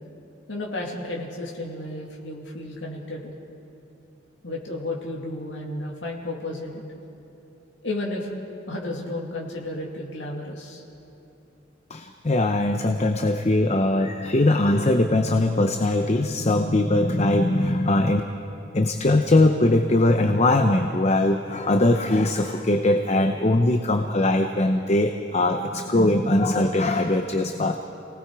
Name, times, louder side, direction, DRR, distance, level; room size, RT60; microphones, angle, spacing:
voice 1, 0.5-3.3 4.4-6.8 7.8-8.3 8.7-10.8, left 2 dB, 65° left, -2 dB, 2.5 m, -32 dB
voice 2, 11.9-18.2 18.7-27.8, left 2 dB, 35° left, 5 dB, 0.8 m, -21 dB
29.0 x 19.0 x 4.8 m, 2.9 s
head